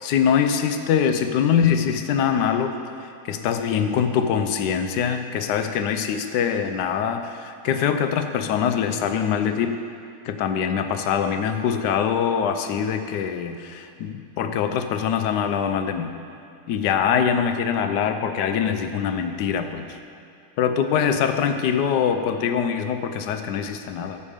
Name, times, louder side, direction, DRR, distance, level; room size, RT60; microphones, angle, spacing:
voice 1, 0.0-9.8 10.2-16.1 16.7-20.0 20.6-24.2, left 7 dB, 80° left, 8 dB, 1.3 m, -23 dB
14.0 x 5.5 x 4.9 m, 2.4 s
omnidirectional pair, 1.8 m